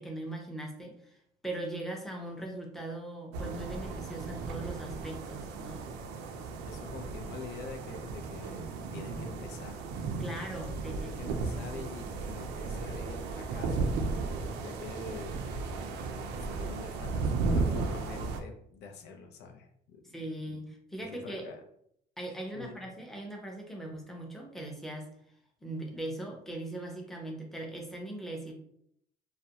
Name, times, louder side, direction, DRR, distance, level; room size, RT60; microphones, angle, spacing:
voice 1, 0.0-5.8 10.2-11.3 20.1-21.5 22.2-25.1 25.6-28.5, right 1 dB, ahead, 0 dB, 0.6 m, -40 dB
sound 1, 3.3-18.4, right 3 dB, 90° right, 0.4 m, -35 dB
voice 2, 6.6-9.8 11.0-13.9 14.2-15.7 16.4-20.6 21.0-21.6 22.5-22.8, left 4 dB, 80° left, 2 dB, 0.5 m, -46 dB
2.4 x 2.1 x 2.8 m, 0.69 s
cardioid pair, 110°, 17 cm